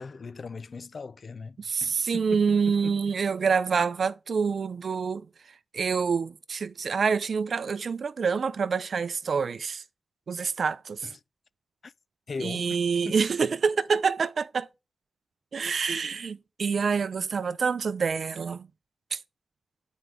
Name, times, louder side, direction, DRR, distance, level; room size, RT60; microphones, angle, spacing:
voice 1, 0.0-3.1 11.0-11.2 11.8-11.9 12.3-12.8 13.0-13.2, left 4 dB, 55° left, 0.4 m, -39 dB
voice 2, 1.6-5.3 5.7-9.8 10.3-11.1 12.4-14.7 15.5-18.7 19.1-19.2, right 5 dB, 65° right, 0.5 m, -27 dB
8.8 x 4.7 x 5.0 m
cardioid pair, 70°, 0 cm